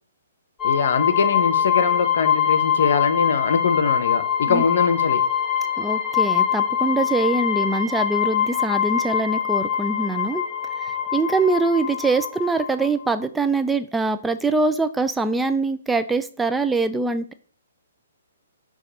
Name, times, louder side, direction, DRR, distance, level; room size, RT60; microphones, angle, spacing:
voice 1, 0.6-5.2, left 5 dB, 65° left, 11 dB, 0.9 m, -22 dB
sound 1, 0.6-13.1, left 8 dB, 10° left, 1.4 m, -23 dB
voice 2, 5.8-10.4 10.8-17.3, right 3 dB, 5° right, 9 dB, 0.3 m, -23 dB
6.3 x 3.0 x 5.6 m, 0.42 s
hypercardioid pair, 140°, 0 cm